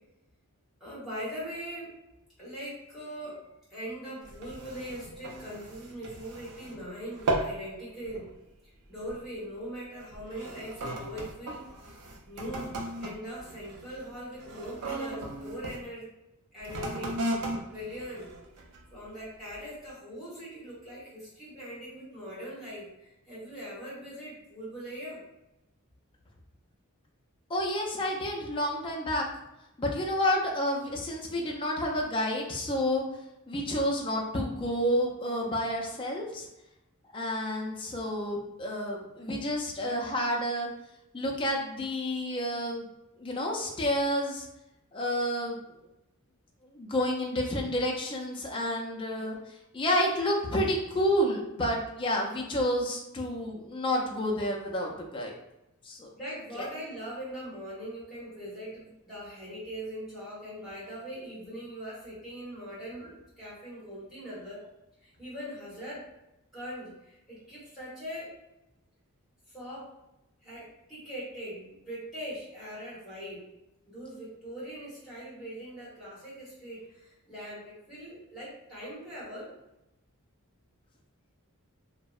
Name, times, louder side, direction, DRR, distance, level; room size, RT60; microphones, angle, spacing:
voice 1, 0.8-1.9 2.4-8.3 8.9-11.6 12.3-12.7 13.0-16.1 16.5-17.2 17.6-18.3 18.9-25.2 49.2-49.3 56.1-64.6 65.0-66.1 66.5-68.4 69.5-69.9 70.4-73.5 73.9-79.5, equal, ahead, -9 dB, 1.1 m, -41 dB
sound 1, 4.2-6.8 7.1-7.6 8.0-8.3 9.0-9.3 10.0-15.8 16.6-18.9 19.5-19.6, right 2 dB, 85° right, 0.5 m, -36 dB
voice 2, 27.5-29.2 29.8-33.0 33.5-36.5 37.1-40.7 41.1-42.9 43.2-44.5 44.9-45.6 46.7-49.4 49.7-55.3 55.8-56.1 56.5-56.7, equal, 20° left, -1 dB, 0.3 m, -30 dB
2.7 x 2.0 x 2.3 m, 0.92 s
head